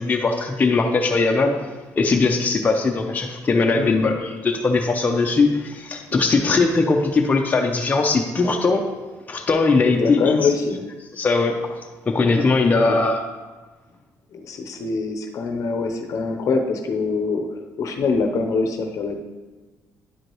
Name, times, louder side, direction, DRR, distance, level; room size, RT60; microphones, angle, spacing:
voice 1, 0.0-8.9 9.3-10.3 11.1-11.8 12.1-13.3, left 3 dB, 25° left, 2 dB, 0.6 m, -20 dB
voice 2, 9.9-10.8 12.7-13.0 14.3-19.2, left 4 dB, 60° left, 4 dB, 0.7 m, -24 dB
9.7 x 5.0 x 3.1 m, 1.3 s
cardioid pair, 120°, 6 cm